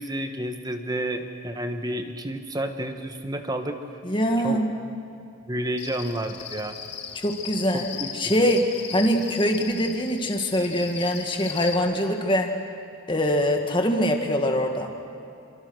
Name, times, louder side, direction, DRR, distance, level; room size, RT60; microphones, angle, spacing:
voice 1, 0.0-3.8 4.4-4.6 5.5-6.8 7.7-8.1 8.4-8.5, right 1 dB, 15° right, 6 dB, 1.3 m, -30 dB
voice 2, 4.0-4.7 7.1-7.9 8.1-12.5 13.1-14.9, equal, 20° left, 4 dB, 1.9 m, -23 dB
Cricket, 5.8-11.7, left 7 dB, 50° left, 2.0 m, -37 dB
28.5 x 24.0 x 6.4 m, 2.6 s
head